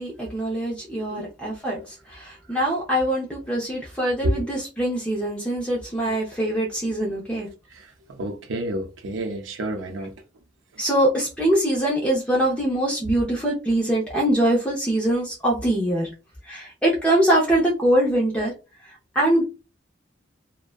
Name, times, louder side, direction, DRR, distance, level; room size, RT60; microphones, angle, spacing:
voice 1, 0.0-7.5 10.8-16.1 16.5-18.5 19.1-19.4, right 1 dB, 5° left, 0.6 m, -23 dB
voice 2, 7.7-10.1, right 1 dB, 90° right, 0.5 m, -29 dB
2.5 x 2.1 x 2.3 m
head